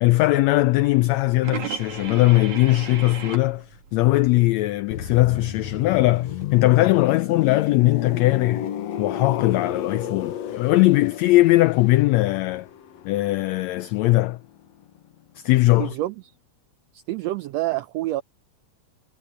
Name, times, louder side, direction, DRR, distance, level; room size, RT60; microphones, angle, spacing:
voice 1, 0.0-8.7 9.0-12.7 13.0-14.4 15.4-16.0, left 18 dB, 85° left, 1.5 m, -20 dB
sound 1, 1.4-4.6 4.9-9.2, right 7 dB, 65° right, 3.9 m, -36 dB
sound 2, 4.9-14.6 14.8-15.1, left 10 dB, 65° left, 2.2 m, -32 dB
voice 2, 15.8-16.1 16.9-18.2, right 16 dB, 85° right, 1.5 m, -27 dB
omnidirectional pair, 3.6 m